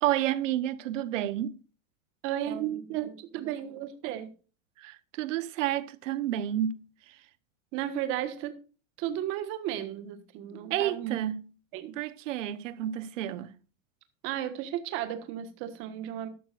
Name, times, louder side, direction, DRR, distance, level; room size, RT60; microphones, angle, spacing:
voice 1, 0.0-1.6 4.8-7.2 10.7-11.5 11.9-13.5, right 12 dB, 75° right, 1.1 m, -30 dB
voice 2, 2.2-4.3 7.7-8.6 9.0-11.1 11.7-11.9 14.2-16.3, right 11 dB, 30° right, 1.4 m, -34 dB
12.5 x 12.5 x 2.5 m
supercardioid pair, 175°, 39 cm